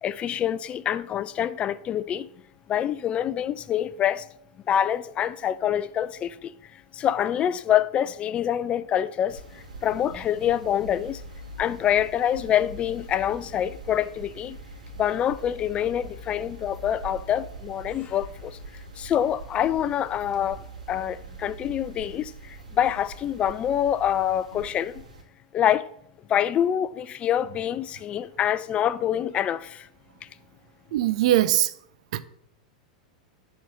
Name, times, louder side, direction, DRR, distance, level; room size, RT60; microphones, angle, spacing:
voice 1, 0.0-2.3 2.7-4.3 4.7-11.2 11.6-14.6 15.0-18.6 19.0-25.0 25.5-25.9 26.3-29.9, left 10 dB, 30° left, 0.5 m, -26 dB
sound 1, 9.3-25.2, right 2 dB, 85° right, 2.3 m, -43 dB
voice 2, 30.9-31.7 32.1-32.2, right 13 dB, 60° right, 0.6 m, -21 dB
10.0 x 4.5 x 6.7 m
hypercardioid pair, 95°, 4 cm